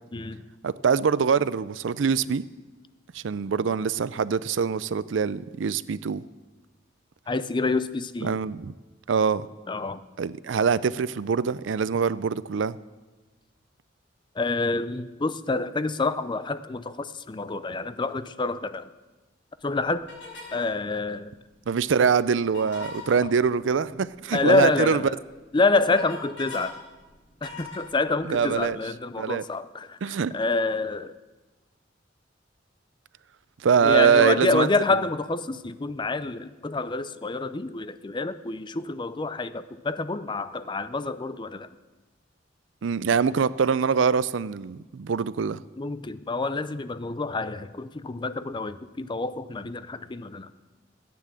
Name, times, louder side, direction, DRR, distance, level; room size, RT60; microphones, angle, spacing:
voice 1, 0.1-0.4 7.3-8.3 9.7-10.0 14.4-18.9 19.6-20.0 20.5-21.3 24.3-25.1 25.5-26.7 27.4-30.0 30.3-31.1 33.8-41.7 45.8-50.5, left 3 dB, 25° left, 13 dB, 0.5 m, -27 dB
voice 2, 0.6-2.4 3.1-6.2 8.2-8.7 9.1-9.5 10.2-12.8 21.7-25.0 28.3-28.8 29.2-29.4 30.0-30.3 33.6-34.7 42.8-45.6, right 6 dB, 80° right, 17 dB, 0.5 m, -24 dB
sound 1, 20.1-20.7 22.4-23.2 24.8-24.9 25.3-26.7 27.0-28.6, left 3 dB, 85° left, 5.9 m, -41 dB
15.0 x 9.6 x 7.6 m, 1.2 s
head